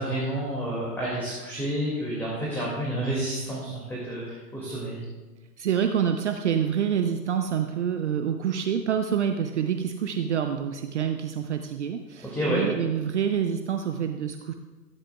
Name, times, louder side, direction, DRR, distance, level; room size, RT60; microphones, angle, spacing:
voice 1, 0.0-5.0 12.3-12.6, right 1 dB, 5° left, -6 dB, 2.2 m, -29 dB
voice 2, 5.6-14.5, right 8 dB, 45° right, 6 dB, 0.7 m, -27 dB
17.5 x 14.0 x 2.3 m, 1.2 s
figure-of-eight pair, 120°, 50 cm